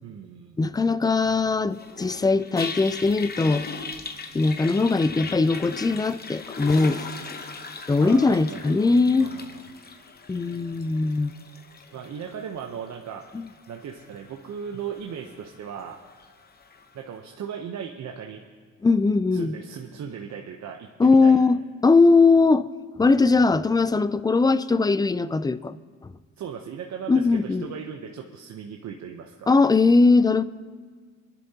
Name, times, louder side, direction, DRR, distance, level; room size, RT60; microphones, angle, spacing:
voice 1, 0.0-0.6 8.0-8.8 9.2-9.7 11.9-13.2 13.7-16.0 16.9-18.4 19.3-21.4 26.4-29.5, right 7 dB, 60° right, 2 dB, 0.9 m, -37 dB
voice 2, 0.6-3.7 4.3-7.1 7.9-9.3 10.3-11.3 13.3-13.5 18.8-19.5 21.0-22.7 23.0-25.8 27.1-27.7 29.5-30.4, left 3 dB, 15° left, 15 dB, 0.4 m, -20 dB
Toilet flush, 1.7-16.9, left 4 dB, 30° left, 1.0 m, -39 dB
25.5 x 11.0 x 2.9 m, 1.5 s
cardioid pair, 90°, 30 cm